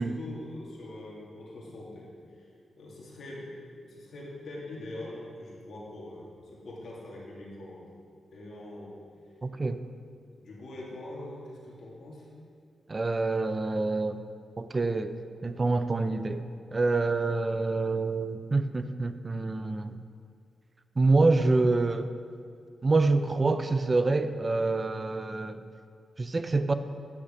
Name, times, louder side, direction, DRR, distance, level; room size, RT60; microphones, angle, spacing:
voice 1, 0.0-2.1 2.4-2.5 2.7-7.9 8.3-9.0 10.4-12.3, left 1 dB, 75° left, -4 dB, 2.3 m, -43 dB
voice 2, 9.4-9.8 12.9-14.2 14.6-20.0 21.0-22.1 22.8-25.6 26.2-26.7, right 3 dB, 35° right, 10 dB, 0.4 m, -26 dB
9.7 x 6.5 x 5.1 m, 2.2 s
cardioid pair, 90°, 0 cm